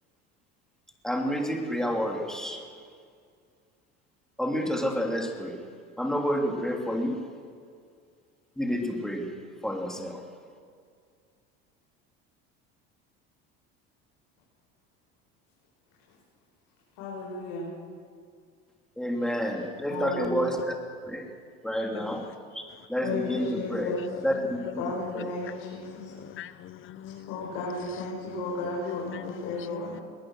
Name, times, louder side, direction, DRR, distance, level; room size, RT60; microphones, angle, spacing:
voice 1, 1.0-2.6 4.4-5.6 6.0-7.2 8.6-9.3 9.6-10.2 19.0-20.6 21.1-21.2 21.6-22.3 22.9-23.9 24.2-24.5 24.7-24.8 25.1-25.3, equal, ahead, 3.2 m, -29 dB
voice 2, 17.0-17.7 19.9-20.5 21.7-21.9 23.0-24.2 24.8-26.1 27.0-30.0, left 2 dB, 75° left, 6.0 m, -34 dB
voice 3, 23.1-24.7 25.4-27.5 28.4-28.5 28.9-30.0, left 11 dB, 45° left, 0.9 m, -39 dB
21.5 x 19.0 x 6.5 m
supercardioid pair, 115°, 30 cm